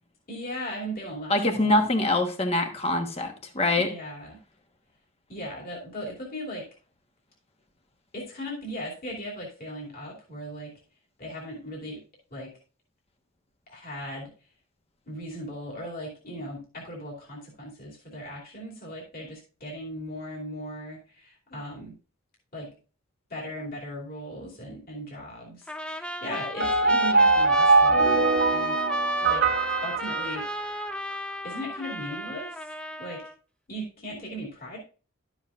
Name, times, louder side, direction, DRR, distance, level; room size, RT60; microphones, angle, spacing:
voice 1, 0.3-1.9 3.8-4.4 5.3-6.6 8.1-10.7 11.2-12.0 12.3-12.5 13.7-14.3 15.1-22.0 22.5-22.7 23.3-28.8 29.2-29.4 29.8-30.5 31.4-33.3 33.7-34.8, equal, 45° left, -2 dB, 2.7 m, -38 dB
voice 2, 1.3-3.9, left 2 dB, 30° left, 5 dB, 1.2 m, -24 dB
Trumpet, 25.7-33.3, equal, 5° left, 0.4 m, -32 dB
sound 1, 26.6-30.9, right 3 dB, 50° right, 1.6 m, -22 dB
12.0 x 7.2 x 2.4 m, 0.35 s
head